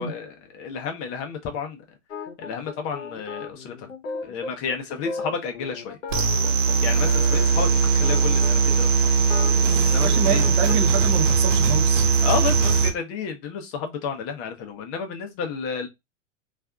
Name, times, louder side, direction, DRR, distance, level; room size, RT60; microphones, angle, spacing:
voice 1, 0.0-1.8 2.4-3.9 4.2-6.0 6.8-9.1 9.8-10.8 12.2-15.9, left 6 dB, 35° left, 0.7 m, -31 dB
sound 1, 2.1-8.8 9.2-11.0, left 4 dB, 80° left, 0.8 m, -35 dB
sound 2, 6.1-12.9, right 5 dB, 70° right, 1.0 m, -20 dB
voice 2, 10.0-12.1, right 6 dB, 45° right, 0.8 m, -27 dB
3.4 x 2.4 x 2.2 m
hypercardioid pair, 105°, 38 cm